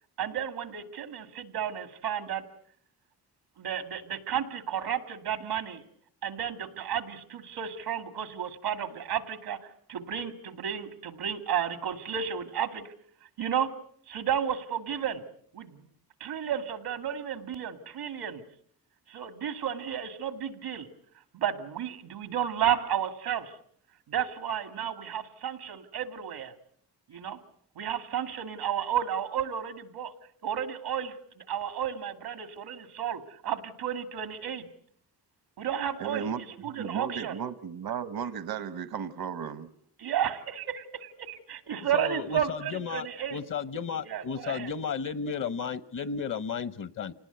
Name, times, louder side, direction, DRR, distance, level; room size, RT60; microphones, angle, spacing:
voice 1, 0.2-2.4 3.6-5.8 6.2-9.6 9.9-12.9 13.4-13.7 14.1-15.2 15.5-15.8 16.2-18.4 19.1-20.9 21.3-23.5 24.1-26.5 27.1-27.4 27.8-30.1 30.4-34.7 35.6-37.4 40.0-43.4 44.0-44.7, right 9 dB, 90° right, 2.1 m, -32 dB
voice 2, 36.0-36.4 36.8-39.7, right 7 dB, 75° right, 1.2 m, -34 dB
voice 3, 41.8-47.1, left 6 dB, 55° left, 1.0 m, -34 dB
27.5 x 19.0 x 8.0 m
cardioid pair, 90°, 38 cm